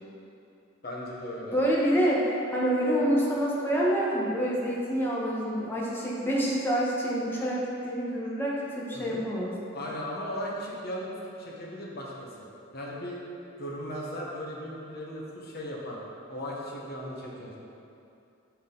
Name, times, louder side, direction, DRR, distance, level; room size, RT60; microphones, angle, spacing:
voice 1, 0.8-1.6 8.9-9.2 9.7-11.1 11.4-12.5 12.7-13.2 13.6-16.0 16.3-17.5, equal, 50° left, -4 dB, 1.1 m, -37 dB
voice 2, 1.5-9.5, equal, 10° left, -6 dB, 1.1 m, -27 dB
6.3 x 5.8 x 3.8 m, 2.6 s
head